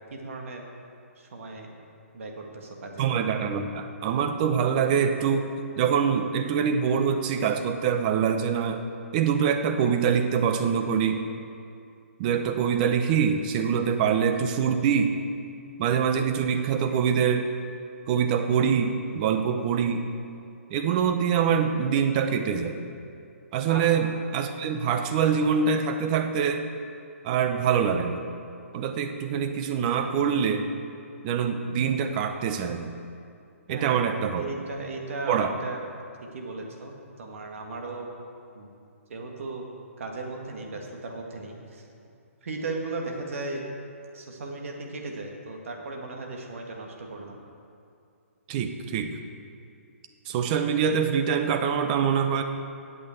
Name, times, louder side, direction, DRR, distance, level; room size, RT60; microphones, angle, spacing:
voice 1, 0.1-0.7 1.2-1.7 2.1-3.1 23.7-23.8 33.7-34.0 34.4-35.8 36.3-38.1 38.5-38.7 39.1-39.7 40.0-41.9 42.4-43.6 44.1-47.4, right 3 dB, 65° right, 1 dB, 1.9 m, -36 dB
voice 2, 3.0-5.5 5.8-8.8 9.1-11.2 12.2-15.1 15.8-17.5 18.1-20.1 20.7-22.8 23.5-26.7 27.2-28.2 28.7-30.7 31.2-32.9 33.7-34.5 35.3-35.5 48.5-49.1 50.3-52.4, right 7 dB, 35° right, 7 dB, 0.8 m, -24 dB
8.6 x 8.1 x 7.9 m, 2.4 s
hypercardioid pair, 145°, 8 cm